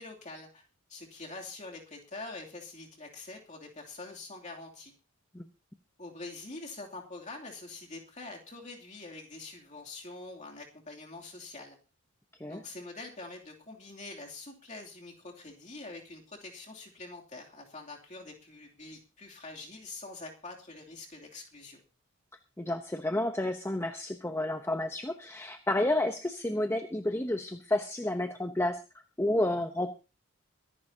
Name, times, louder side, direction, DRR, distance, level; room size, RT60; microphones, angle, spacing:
voice 1, 0.0-4.9 6.0-11.8 12.5-21.8, left 3 dB, 35° left, 0 dB, 2.8 m, -45 dB
voice 2, 22.6-28.8 29.2-29.9, left 1 dB, 10° left, 6 dB, 0.8 m, -30 dB
23.5 x 11.0 x 2.8 m, 0.30 s
head